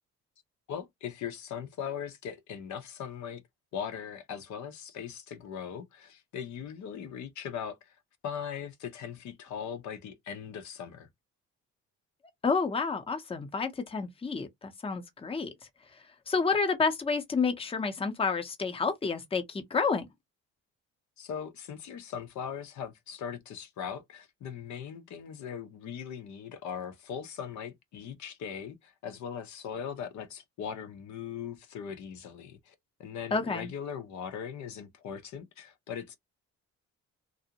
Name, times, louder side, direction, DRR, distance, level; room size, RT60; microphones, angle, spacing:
voice 1, 0.7-3.4 3.7-8.0 8.2-11.1 21.2-32.7 33.0-36.2, left 8 dB, 70° left, 0.6 m, -39 dB
voice 2, 12.4-15.5 16.3-20.1 33.3-33.7, left 4 dB, 20° left, 0.6 m, -29 dB
2.5 x 2.0 x 2.8 m
cardioid pair, 90°, 30 cm